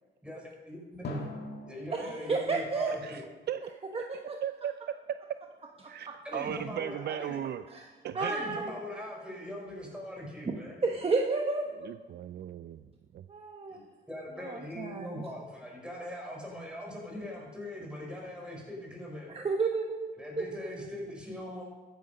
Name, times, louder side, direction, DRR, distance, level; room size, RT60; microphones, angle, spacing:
voice 1, 0.7-1.2 1.7-3.2 6.2-7.4 8.1-10.8 13.7-19.4 20.1-21.6, left 1 dB, 5° right, -1 dB, 5.0 m, -41 dB
Drum, 1.0-3.9, left 1 dB, 55° left, 2.3 m, -43 dB
voice 2, 1.9-2.9 3.9-4.4 7.7-7.8 8.1-8.7 10.4-11.9 13.3-13.8 14.4-15.2 19.3-20.4 20.7-21.0, right 3 dB, 30° right, 2 dB, 1.2 m, -32 dB
voice 3, 3.0-3.6 3.9-5.2 5.9-7.7 8.0-8.4 11.8-13.3, right 10 dB, 55° right, 11 dB, 0.5 m, -37 dB
13.5 x 9.5 x 5.3 m, 1.3 s
cardioid pair, 90°, 20 cm